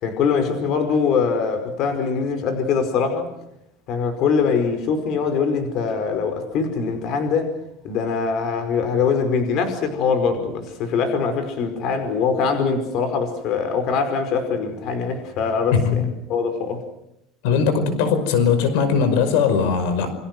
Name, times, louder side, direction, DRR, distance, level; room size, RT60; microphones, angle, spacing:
voice 1, 0.0-3.3 3.9-7.5 7.8-16.8, left 5 dB, 45° left, 8 dB, 5.1 m, -23 dB
voice 2, 15.7-16.1 17.4-20.1, left 6 dB, 80° left, 11 dB, 5.4 m, -19 dB
29.0 x 25.5 x 6.2 m, 0.79 s
cardioid pair, 165°, 0 cm